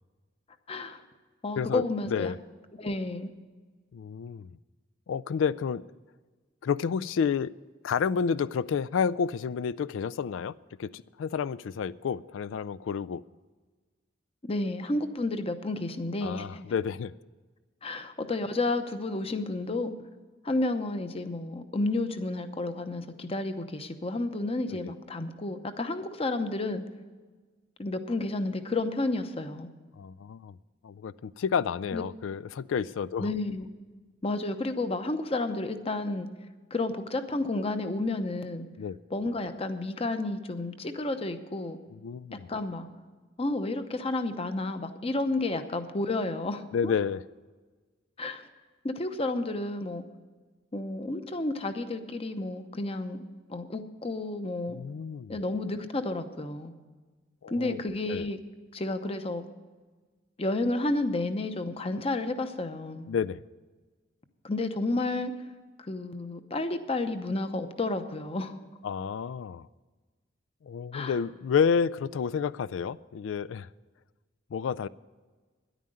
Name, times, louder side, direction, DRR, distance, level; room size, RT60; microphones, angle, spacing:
voice 1, 0.7-1.0 1.4-2.3 2.8-3.3 14.5-16.6 17.8-19.9 20.4-26.8 27.8-29.7 31.9-32.0 33.2-33.7 34.2-36.3 36.7-38.7 39.1-41.8 42.5-42.9 43.4-46.9 48.2-48.4 48.8-50.0 50.7-53.2 53.5-54.8 55.3-56.7 57.5-58.4 58.7-59.4 60.4-63.1 64.4-65.3 65.9-68.6 70.9-71.2, left 2 dB, 30° left, 9 dB, 0.8 m, -31 dB
voice 2, 1.6-2.4 3.9-4.6 5.1-5.8 6.6-7.5 7.8-10.5 10.8-13.2 16.2-17.1 24.8-24.9 30.0-30.6 30.8-33.3 38.8-39.0 41.9-42.5 46.7-47.2 54.7-55.4 57.4-57.8 58.1-58.3 63.1-63.4 68.8-69.7 70.6-73.7 74.5-74.9, left 6 dB, 85° left, 18 dB, 0.3 m, -30 dB
10.5 x 9.3 x 7.7 m, 1.4 s
head